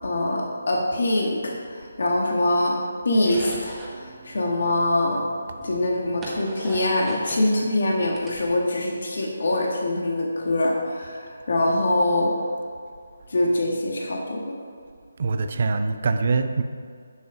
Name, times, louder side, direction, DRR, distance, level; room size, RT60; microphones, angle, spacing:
voice 1, 0.0-2.7 3.1-5.2 5.6-12.3 13.3-14.5, left 1 dB, 60° left, -1 dB, 1.8 m, -24 dB
sound 1, 3.1-4.0 5.1-5.2 5.6-7.5 7.9-8.9, right 1 dB, 10° right, 1.6 m, -38 dB
voice 2, 5.5-5.8 15.2-16.6, right 4 dB, 50° right, 8 dB, 0.6 m, -25 dB
11.0 x 6.1 x 5.2 m, 2.2 s
figure-of-eight pair, 155°, 0 cm